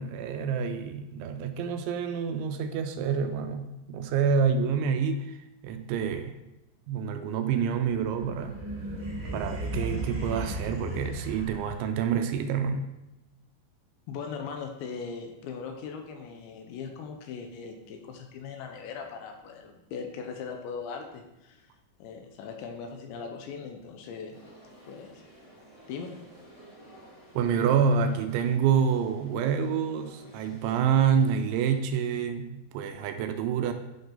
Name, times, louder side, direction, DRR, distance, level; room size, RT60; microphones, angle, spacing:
voice 1, 0.0-5.4 5.6-6.4 6.9-8.6 9.3-12.9 27.3-33.7, right 7 dB, 85° right, 7 dB, 2.9 m, -27 dB
sound 1, 7.8-12.1, right 1 dB, 15° right, 1.1 m, -35 dB
voice 2, 14.1-21.7 22.0-24.4 24.9-25.2 25.9-26.1, left 5 dB, 80° left, 4 dB, 3.0 m, -39 dB
sound 2, 24.3-31.8, right 1 dB, 25° left, 1.5 m, -53 dB
11.5 x 5.8 x 3.9 m, 0.95 s
omnidirectional pair, 5.5 m